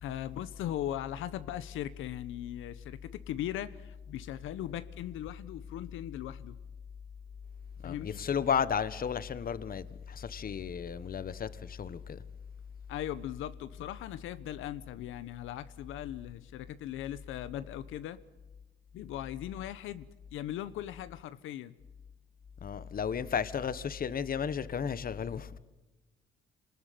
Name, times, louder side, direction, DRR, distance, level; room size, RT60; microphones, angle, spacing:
voice 1, 0.0-6.6 7.8-8.2 12.9-18.2 18.9-21.7, left 12 dB, 90° left, 1.0 m, -39 dB
voice 2, 7.8-12.2 22.6-25.6, left 7 dB, 45° left, 1.4 m, -33 dB
26.5 x 20.0 x 9.5 m
cardioid pair, 90°, 20 cm